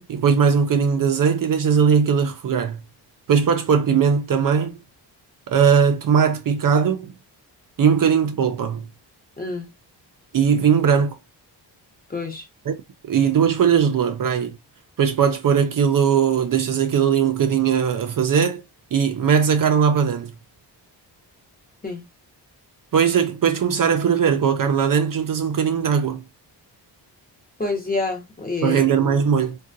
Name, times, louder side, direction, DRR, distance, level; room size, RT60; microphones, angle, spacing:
voice 1, 0.0-2.8 3.3-4.8 5.5-7.1 7.8-8.9 10.3-11.2 12.7-12.8 13.0-14.6 15.0-18.6 18.9-20.3 22.9-26.2 28.6-29.6, right 7 dB, 50° right, 0.5 m, -19 dB
voice 2, 9.4-9.7 12.1-12.5 21.8-22.0 27.6-28.8, left 3 dB, 20° left, 0.8 m, -27 dB
3.6 x 2.3 x 2.5 m
wide cardioid pair, 140°, 43 cm